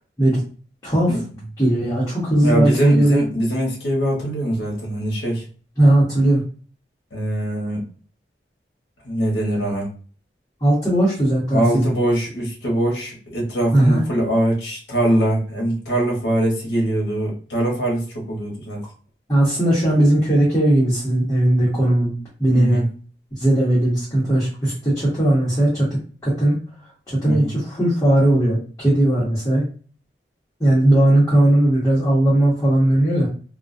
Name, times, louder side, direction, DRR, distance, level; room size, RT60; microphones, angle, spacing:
voice 1, 0.8-1.1 1.6-3.2 5.8-6.4 10.6-11.9 13.7-14.0 19.3-22.1 22.4-22.8 23.3-25.9 26.2-26.5 27.1-29.6 30.6-33.3, right 1 dB, 15° left, -8 dB, 0.8 m, -17 dB
voice 2, 2.4-5.4 7.1-7.8 9.0-9.9 11.5-18.8 22.5-22.9 27.2-27.5, right 1 dB, 75° left, -1 dB, 0.9 m, -22 dB
2.3 x 2.2 x 2.5 m, 0.41 s
head